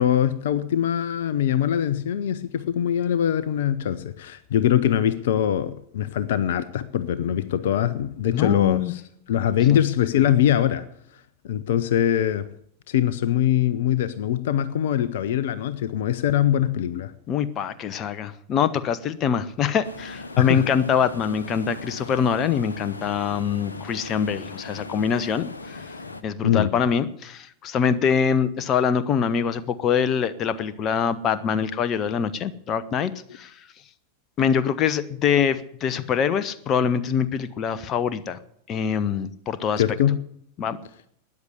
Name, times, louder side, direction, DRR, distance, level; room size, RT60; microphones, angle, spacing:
voice 1, 0.0-9.0 9.3-10.9 11.4-12.5 12.9-17.1 20.4-20.7 26.4-26.7 39.8-40.2, left 10 dB, 55° left, 0.7 m, -22 dB
voice 2, 8.3-8.9 9.7-9.8 17.3-25.9 26.2-33.7 34.4-38.4 38.7-39.8 40.6-40.8, left 7 dB, 30° left, 0.9 m, -24 dB
sound 1, 19.8-26.2, left 3 dB, 75° left, 1.1 m, -39 dB
13.5 x 9.8 x 8.3 m
figure-of-eight pair, 90°, 0 cm